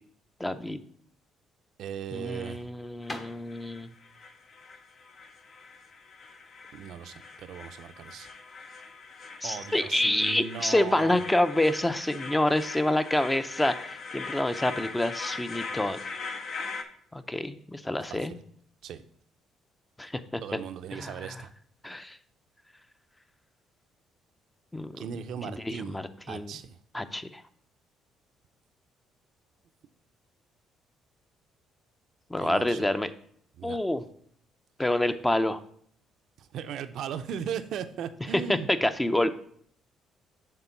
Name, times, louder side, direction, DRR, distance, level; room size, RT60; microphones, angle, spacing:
voice 1, 0.4-0.8 2.1-3.9 9.4-16.0 17.1-18.3 20.0-20.4 20.9-21.4 21.8-22.2 24.7-25.0 25.5-26.5 26.9-27.4 32.3-33.1 33.6-34.0 34.8-35.6 38.3-39.3, left 1 dB, 15° left, 11 dB, 0.6 m, -27 dB
sound 1, 1.2-6.8, left 2 dB, 30° left, 1.0 m, -46 dB
voice 2, 1.8-2.7 6.7-8.3 9.4-11.2 18.1-18.4 18.8-19.0 20.4-21.5 25.0-26.0 26.3-26.8 32.4-32.9 33.6-33.8 36.4-38.7, right 8 dB, 70° right, 11 dB, 0.5 m, -37 dB
sound 2, 3.0-16.8, left 4 dB, 55° left, 0.8 m, -41 dB
6.7 x 3.6 x 5.8 m, 0.63 s
supercardioid pair, 65°, 0 cm